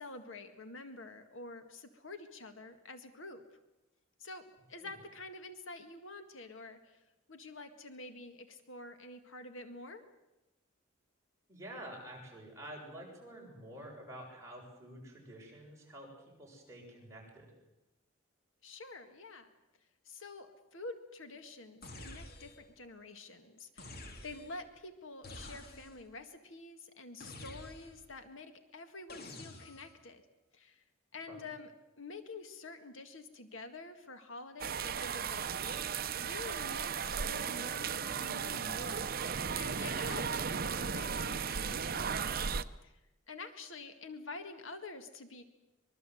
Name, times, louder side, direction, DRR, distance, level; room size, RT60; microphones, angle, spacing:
voice 1, 0.0-3.4 4.2-7.0 7.3-10.0 18.6-19.5 20.0-30.2 30.5-30.8 31.1-31.7 32.0-39.1 39.6-42.2 42.8-43.0 43.3-45.4, left 3 dB, 70° left, 8 dB, 2.0 m, -48 dB
voice 2, 11.5-16.1 16.4-17.5 31.3-31.5, right 1 dB, 15° right, -2 dB, 7.5 m, -49 dB
sound 1, 21.8-22.7 23.8-24.6 25.2-26.1 27.2-28.1 29.1-30.0, left 2 dB, 50° left, 2.8 m, -49 dB
sound 2, 34.6-42.6, right 6 dB, 45° right, 0.8 m, -35 dB
24.5 x 22.0 x 7.9 m, 0.99 s
head